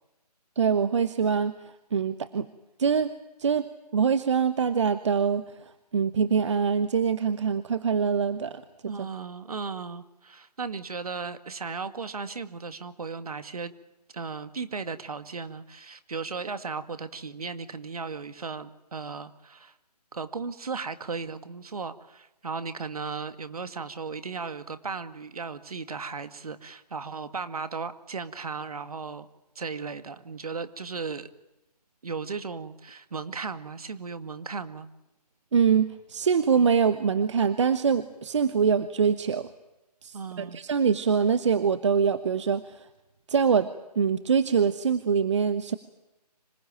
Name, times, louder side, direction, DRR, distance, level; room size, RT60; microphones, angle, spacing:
voice 1, 0.6-1.6 1.9-2.5 2.8-3.1 3.4-3.6 3.9-5.5 5.9-9.1 35.5-39.5 40.0-42.9 43.3-43.7 44.0-45.8, right 6 dB, 45° right, 12 dB, 1.1 m, -24 dB
voice 2, 8.9-13.7 14.1-19.7 20.1-29.3 29.6-31.3 32.0-34.9 40.1-40.6, right 5 dB, 60° right, 10 dB, 2.1 m, -36 dB
26.0 x 19.0 x 9.1 m, 0.96 s
figure-of-eight pair, 155°, 21 cm